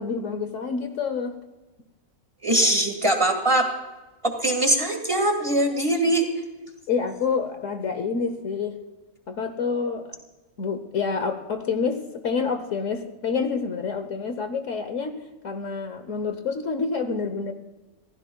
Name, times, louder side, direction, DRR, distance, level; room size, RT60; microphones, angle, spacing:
voice 1, 0.0-1.4 6.9-8.8 9.3-10.1 10.6-17.5, left 5 dB, 60° left, 8 dB, 1.3 m, -28 dB
voice 2, 2.4-3.7 4.2-6.3, right 1 dB, 20° right, 4 dB, 1.8 m, -22 dB
27.0 x 15.5 x 2.3 m, 1.1 s
omnidirectional pair, 1.6 m